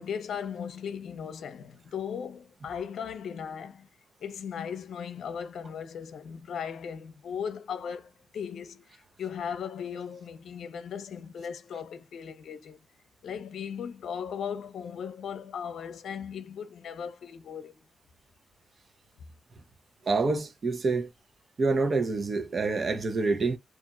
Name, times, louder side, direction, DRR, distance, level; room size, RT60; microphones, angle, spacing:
voice 1, 0.0-3.9 4.2-12.8 13.2-17.8, left 7 dB, 80° left, 0.6 m, -37 dB
voice 2, 20.1-21.1 21.6-23.6, right 3 dB, 55° right, 0.8 m, -27 dB
2.8 x 2.5 x 2.4 m
cardioid pair, 65°, 0 cm